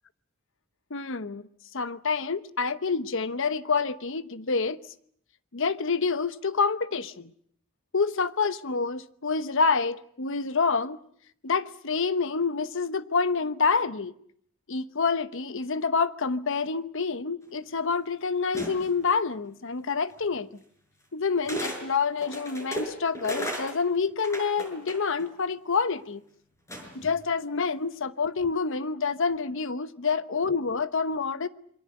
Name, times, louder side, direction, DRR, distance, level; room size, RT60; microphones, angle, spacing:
voice 1, 0.9-1.4 1.7-4.8 5.5-7.3 7.9-11.0 11.4-14.1 14.7-20.5 21.1-26.2 26.9-31.5, left 5 dB, 65° left, 14 dB, 1.0 m, -27 dB
sound 1, 18.5-19.0 20.2-20.3 21.4-21.8 22.2-25.3 26.7-27.1, equal, 15° left, 6.0 m, -35 dB
27.5 x 22.5 x 7.8 m, 0.66 s
head